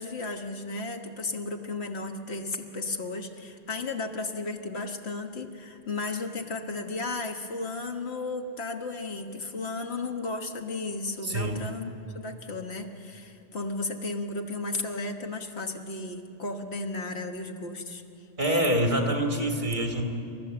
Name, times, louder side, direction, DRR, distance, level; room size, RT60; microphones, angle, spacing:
voice 1, 0.0-18.0, left 3 dB, 75° left, 5 dB, 1.6 m, -34 dB
voice 2, 11.2-11.6 18.4-20.0, right 1 dB, 45° right, 2 dB, 2.4 m, -26 dB
29.0 x 13.0 x 7.8 m, 2.6 s
omnidirectional pair, 1.1 m